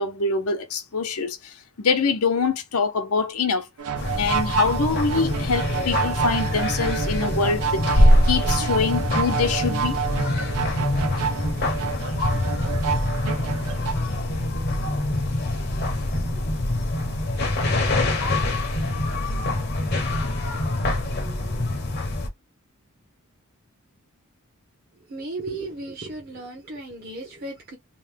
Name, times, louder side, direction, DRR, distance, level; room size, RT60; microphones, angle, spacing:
voice 1, 0.0-3.7 4.1-10.0, left 4 dB, 85° left, 0.8 m, -24 dB
sound 1, 3.8-13.9, right 7 dB, 80° right, 0.5 m, -29 dB
sound 2, 4.0-22.3, left 1 dB, 45° left, 0.7 m, -24 dB
voice 2, 25.1-27.8, right 2 dB, 45° right, 0.9 m, -35 dB
2.9 x 2.2 x 3.3 m
head